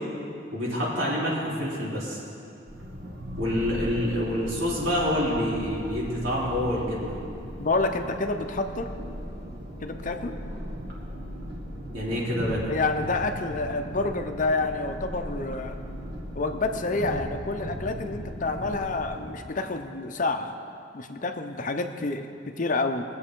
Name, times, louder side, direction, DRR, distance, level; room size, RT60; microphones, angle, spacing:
voice 1, 0.5-2.2 3.4-7.2 11.9-12.6, left 1 dB, 90° right, -7 dB, 3.3 m, -27 dB
sound 1, 2.7-19.3, equal, 55° right, 1.8 m, -37 dB
voice 2, 7.6-8.9 9.8-10.4 12.7-15.8 16.3-20.5 20.9-23.0, left 3 dB, 40° left, 6 dB, 0.7 m, -28 dB
20.0 x 7.8 x 3.7 m, 2.5 s
head